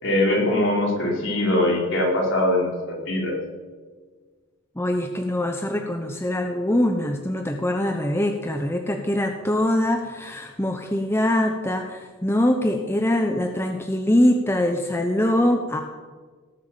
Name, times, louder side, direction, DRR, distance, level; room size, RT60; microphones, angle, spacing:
voice 1, 0.0-3.4, left 1 dB, 60° left, -2 dB, 4.7 m, -22 dB
voice 2, 4.8-15.8, left 1 dB, 10° left, 4 dB, 0.8 m, -23 dB
18.5 x 8.3 x 7.4 m, 1.4 s
head